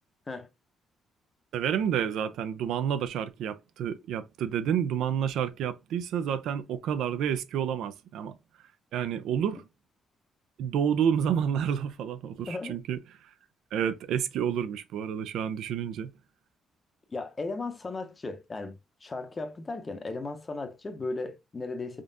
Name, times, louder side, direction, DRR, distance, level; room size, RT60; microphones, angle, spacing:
voice 1, 1.5-8.4 8.9-9.6 10.6-13.0 13.7-16.1, right 8 dB, 85° right, 0.4 m, -29 dB
voice 2, 12.5-12.8 17.1-22.0, left 3 dB, 30° left, 0.7 m, -36 dB
3.7 x 3.5 x 2.5 m
cardioid pair, 90°, 0 cm